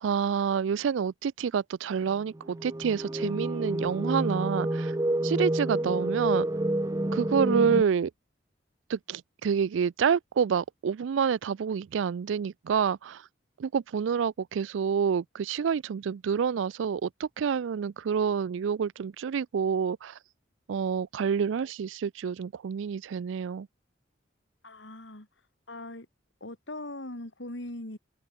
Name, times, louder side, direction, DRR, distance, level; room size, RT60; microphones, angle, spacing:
voice 1, 0.0-4.9 5.2-6.4 7.1-8.1 8.9-13.2 13.6-20.1 20.7-23.7, right 7 dB, 80° right, 0.4 m, -28 dB
sound 1, 2.4-7.8, right 1 dB, 15° right, 0.5 m, -29 dB
voice 2, 24.6-25.3 25.7-26.1 26.4-28.0, left 1 dB, 70° left, 3.3 m, -40 dB
open air
head